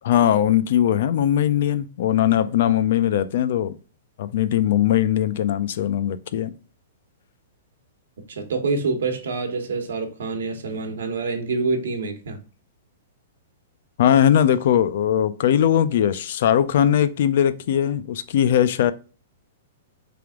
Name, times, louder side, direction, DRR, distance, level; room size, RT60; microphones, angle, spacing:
voice 1, 0.0-3.7 4.2-6.5 14.0-18.9, left 10 dB, 50° left, 0.4 m, -20 dB
voice 2, 8.3-12.4, right 4 dB, 80° right, 1.1 m, -26 dB
3.4 x 3.4 x 3.5 m
hypercardioid pair, 170°, 0 cm